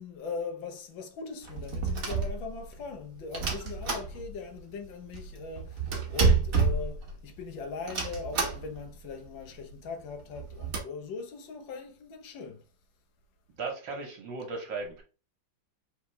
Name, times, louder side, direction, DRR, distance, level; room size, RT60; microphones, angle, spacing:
voice 1, 0.0-12.6, left 4 dB, 80° left, 1.6 m, -40 dB
sound 1, 1.4-2.8 3.3-4.6 4.9-5.0 5.1-7.4 7.9-8.9 9.3-9.4 9.6-9.7 10.2-10.8, right 4 dB, 50° right, 1.5 m, -29 dB
voice 2, 13.6-15.0, right 4 dB, 70° right, 1.8 m, -36 dB
4.2 x 3.7 x 3.2 m
omnidirectional pair, 2.1 m